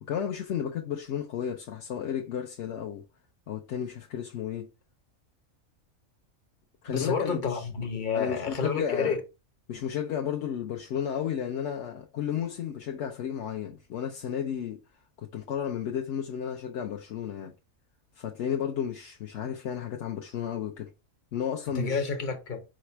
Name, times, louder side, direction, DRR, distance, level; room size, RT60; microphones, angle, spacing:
voice 1, 0.0-3.0 3.5-4.7 6.8-7.6 8.1-9.1 9.7-14.8 15.2-17.5 18.2-20.9 21.3-22.1, left 9 dB, 65° left, 0.9 m, -33 dB
voice 2, 6.9-9.2 21.7-22.6, left 5 dB, 40° left, 1.0 m, -29 dB
4.9 x 2.1 x 4.4 m
omnidirectional pair, 1.5 m